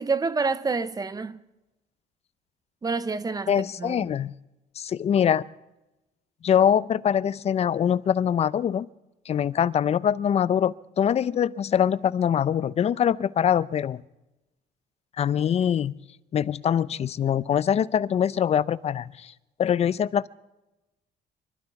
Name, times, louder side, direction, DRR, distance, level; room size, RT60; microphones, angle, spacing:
voice 1, 0.0-1.4 2.8-4.1, right 4 dB, 20° right, 0.7 m, -28 dB
voice 2, 3.5-4.3 4.8-5.5 6.4-8.9 9.3-14.0 15.2-15.9 16.3-19.3 19.6-20.3, left 9 dB, 40° left, 0.5 m, -23 dB
25.0 x 12.5 x 4.7 m
cardioid pair, 110°, 17 cm